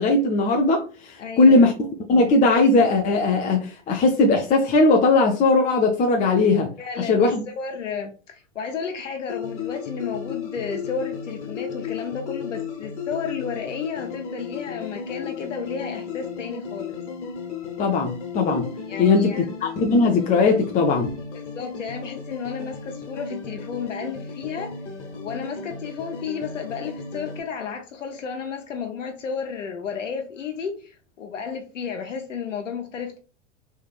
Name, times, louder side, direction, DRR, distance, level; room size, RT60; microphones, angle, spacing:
voice 1, 0.0-1.7 2.1-6.7 7.0-7.5 17.8-18.7 19.0-21.1, left 3 dB, 20° left, 0.5 m, -19 dB
voice 2, 1.2-1.7 6.8-7.3 7.6-17.0 18.9-19.5 21.3-24.7 25.1-33.2, left 6 dB, 85° left, 0.7 m, -32 dB
sound 1, 9.3-27.4, left 6 dB, 70° left, 1.1 m, -35 dB
3.3 x 3.2 x 2.3 m
hypercardioid pair, 90°, 37 cm